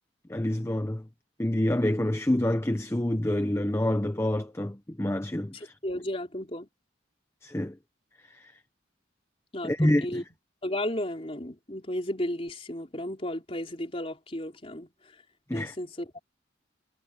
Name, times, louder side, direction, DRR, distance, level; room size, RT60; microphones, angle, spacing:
voice 1, 0.3-1.1 1.4-5.7 7.4-7.8 8.2-8.6 9.6-10.2 15.5-15.7, left 1 dB, 15° left, 0.7 m, -27 dB
voice 2, 5.5-6.7 9.5-10.2 10.6-15.2 15.5-16.2, left 1 dB, 30° left, 4.1 m, -34 dB
head